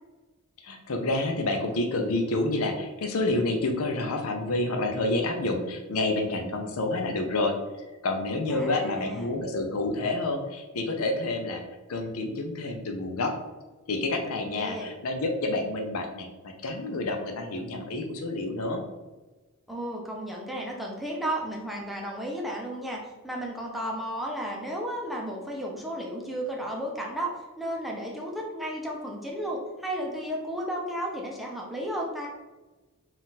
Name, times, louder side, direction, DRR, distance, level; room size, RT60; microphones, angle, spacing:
voice 1, 0.6-7.6 8.0-11.6 11.9-13.4 13.9-18.8, left 2 dB, 75° left, 4 dB, 0.6 m, -28 dB
voice 2, 8.5-9.4 14.4-14.9 19.7-27.3 27.6-32.3, right 1 dB, ahead, -2 dB, 0.6 m, -33 dB
4.0 x 2.5 x 4.0 m, 1.2 s
head